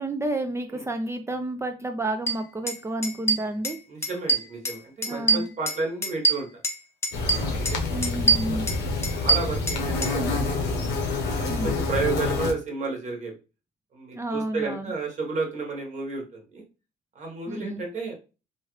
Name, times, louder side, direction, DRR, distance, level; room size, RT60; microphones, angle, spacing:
voice 1, 0.0-3.8 5.1-5.5 7.9-8.7 11.5-11.7 14.1-14.9 17.5-17.8, right 1 dB, 15° right, 6 dB, 0.3 m, -30 dB
sound 1, 2.3-2.4 2.7-2.8 3.0-4.8 5.0-6.8 7.0-7.8 8.0-10.1, right 3 dB, 15° left, 0.6 m, -24 dB
voice 2, 3.9-6.6 7.2-8.0 8.5-8.6 9.1-10.8 11.3-13.4 13.9-16.6 17.1-18.1, right 4 dB, 45° right, 1 dB, 1.2 m, -32 dB
sound 2, 7.1-12.5, left 3 dB, 80° left, 0.8 m, -27 dB
3.1 x 2.3 x 3.1 m, 0.32 s
cardioid pair, 110°, 17 cm